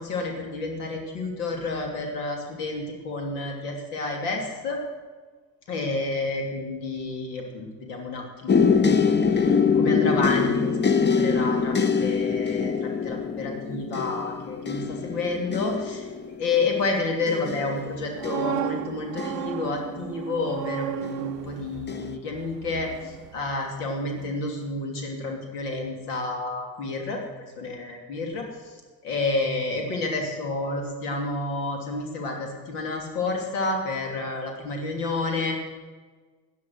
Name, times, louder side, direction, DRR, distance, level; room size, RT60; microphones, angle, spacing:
voice 1, 0.0-4.8 5.7-16.1 16.4-27.2 27.6-28.7 29.0-35.5, left 3 dB, 70° left, 2 dB, 3.0 m, -30 dB
sound 1, 8.5-20.3 21.0-21.5 21.9-22.1, left 5 dB, 20° left, 0.9 m, -24 dB
sound 2, 17.9-23.9 24.2-24.4, right 14 dB, 75° right, 0.6 m, -35 dB
18.5 x 10.5 x 6.5 m, 1.4 s
figure-of-eight pair, 55°, 48 cm